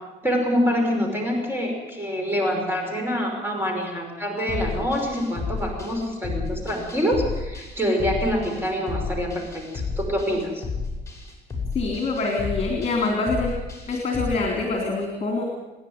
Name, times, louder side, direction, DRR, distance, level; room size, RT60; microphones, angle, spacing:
voice 1, 0.2-10.6, equal, 15° right, 2 dB, 5.5 m, -26 dB
sound 1, 4.5-14.3, left 4 dB, 15° left, 6.4 m, -32 dB
voice 2, 11.7-13.5 13.9-15.4, left 3 dB, 40° left, 2 dB, 3.6 m, -25 dB
27.5 x 10.5 x 9.6 m, 1.1 s
cardioid pair, 110°, 17 cm